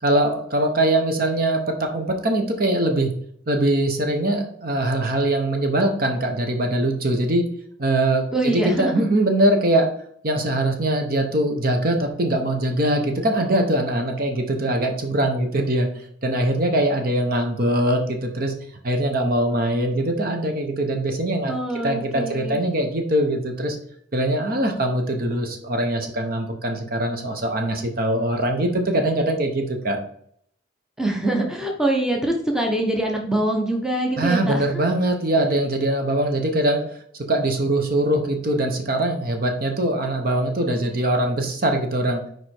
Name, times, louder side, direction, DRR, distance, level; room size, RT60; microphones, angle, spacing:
voice 1, 0.0-3.1 3.5-7.5 7.8-9.9 10.2-15.9 16.2-18.5 18.8-21.5 21.8-23.8 24.1-30.0 34.2-36.8 37.3-42.2, right 1 dB, 50° right, 4 dB, 0.9 m, -22 dB
voice 2, 8.3-9.0 21.5-22.6 31.0-34.9, right 1 dB, 5° right, 0 dB, 0.8 m, -24 dB
4.9 x 4.6 x 4.4 m, 0.65 s
head